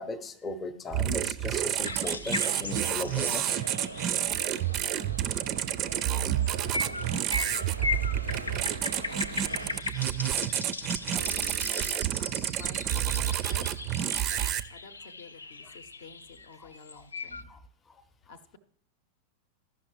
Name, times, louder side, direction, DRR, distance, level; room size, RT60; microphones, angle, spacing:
voice 1, 0.0-3.6 17.5-17.6, left 2 dB, 20° left, 7 dB, 0.6 m, -37 dB
sound 1, 0.9-14.6, right 11 dB, 35° right, 0.4 m, -30 dB
sound 2, 1.8-5.4 6.0-17.4, left 3 dB, 75° left, 0.3 m, -38 dB
sound 3, 2.4-9.8, right 2 dB, 85° right, 0.5 m, -43 dB
voice 2, 6.8-10.4 11.1-13.1 13.5-17.5 18.3-18.6, left 4 dB, 55° left, 11 dB, 0.7 m, -51 dB
14.5 x 5.8 x 3.0 m, 0.72 s
figure-of-eight pair, 90°, 0 cm